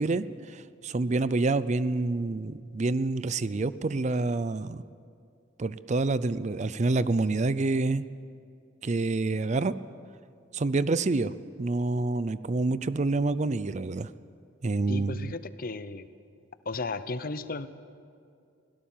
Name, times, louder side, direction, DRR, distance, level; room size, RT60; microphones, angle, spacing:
voice 1, 0.0-4.8 5.6-8.0 8.8-9.8 10.5-11.3 11.6-14.1 14.6-15.3, right 3 dB, 40° right, 16 dB, 0.5 m, -27 dB
voice 2, 14.9-16.1 16.6-17.7, left 3 dB, 50° left, 13 dB, 0.8 m, -34 dB
23.5 x 17.0 x 7.4 m, 2.4 s
head